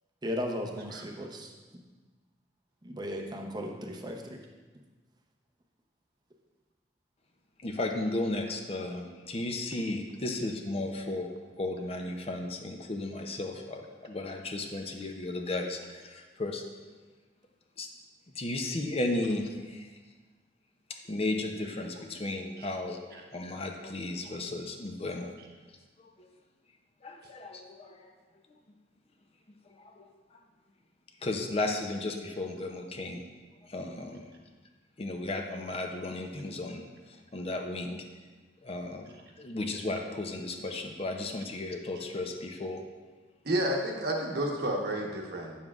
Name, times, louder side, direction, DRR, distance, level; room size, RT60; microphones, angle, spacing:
voice 1, 0.2-1.5 2.8-4.4 10.8-10.9, equal, 25° right, 2 dB, 0.7 m, -36 dB
voice 2, 7.6-11.3 11.6-16.6 17.8-17.9 18.4-19.9 21.1-25.3 26.2-26.3 27.0-28.1 30.0-30.1 31.2-33.2 33.7-34.2 35.0-36.8 37.3-38.0 38.6-39.1 39.4-42.8, left 2 dB, 35° left, 3 dB, 0.6 m, -34 dB
voice 3, 43.4-45.6, right 1 dB, 60° right, 0 dB, 1.1 m, -31 dB
9.1 x 7.1 x 2.4 m, 1.3 s
head